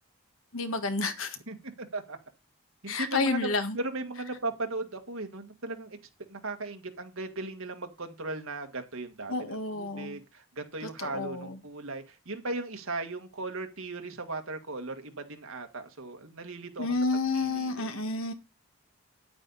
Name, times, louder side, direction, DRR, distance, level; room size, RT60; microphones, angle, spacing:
voice 1, 0.5-1.4 2.9-3.8 9.3-10.2 10.8-11.6 16.8-18.3, left 3 dB, 65° left, 1.6 m, -30 dB
voice 2, 1.5-2.2 2.8-6.0 6.3-16.9 17.3-17.9, right 2 dB, 70° right, 1.8 m, -37 dB
9.6 x 8.9 x 4.1 m
head